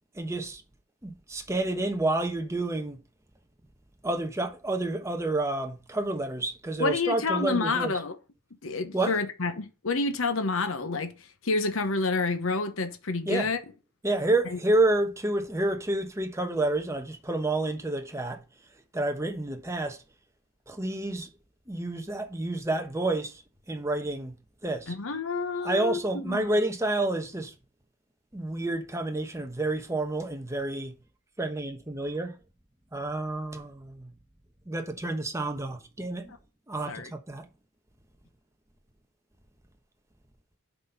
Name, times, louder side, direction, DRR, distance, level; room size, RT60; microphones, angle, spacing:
voice 1, 0.1-0.6 1.0-3.0 4.0-7.9 8.9-9.1 13.2-13.5 14.0-18.4 18.9-20.0 20.7-21.3 21.7-23.4 23.7-24.3 24.6-24.9 25.6-27.5 28.3-30.9 31.4-32.4 32.9-34.1 34.7-36.3 36.7-37.5, right 2 dB, 15° right, 1.0 m, -29 dB
voice 2, 6.8-8.1 8.6-13.6 14.5-14.6 24.9-26.5 36.3-36.4 36.9-37.1, left 3 dB, 65° left, 0.9 m, -29 dB
8.2 x 4.3 x 5.5 m
head